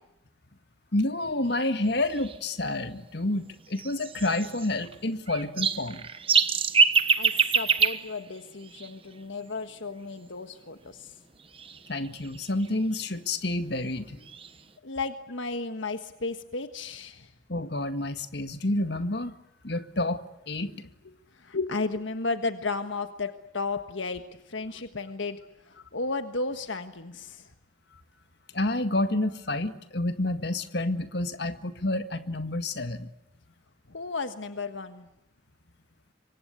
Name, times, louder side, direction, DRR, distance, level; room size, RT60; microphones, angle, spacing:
voice 1, 0.9-6.1 11.9-14.2 17.5-19.3 19.6-20.9 28.5-33.1, left 2 dB, 55° left, 9 dB, 1.8 m, -29 dB
sound 1, 1.8-1.9 2.1-2.4 3.8-4.9 5.3-9.1 11.4-13.1 13.8-13.9 14.2-14.6, right 5 dB, 30° right, 1.2 m, -26 dB
voice 2, 7.2-11.1 14.8-17.3 21.4-25.4 25.7-27.5 33.9-35.1, left 3 dB, 75° left, 9 dB, 1.5 m, -34 dB
26.5 x 24.0 x 8.2 m, 0.86 s
head